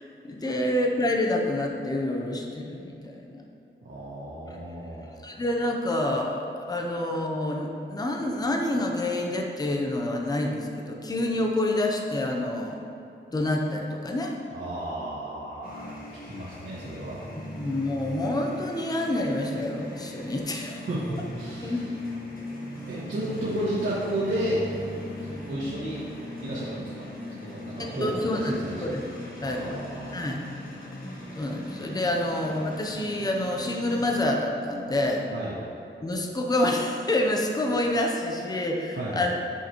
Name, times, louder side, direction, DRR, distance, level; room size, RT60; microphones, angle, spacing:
voice 1, 0.2-3.4 5.2-12.8 13.3-14.4 17.6-20.8 21.6-21.9 28.0-29.8 30.1-30.4 31.4-35.2 36.0-39.3, left 1 dB, 20° left, 1 dB, 0.6 m, -27 dB
voice 2, 3.8-5.1 14.5-17.3 20.8-21.9 22.9-24.6 25.2-26.0 26.4-26.9 27.3-29.0 29.4-30.3 35.3-35.6 38.9-39.3, right 1 dB, 85° right, -11 dB, 1.6 m, -33 dB
sound 1, 15.6-34.2, left 1 dB, 45° left, 1.6 m, -39 dB
8.3 x 6.4 x 3.0 m, 2.8 s
wide cardioid pair, 175°, 20 cm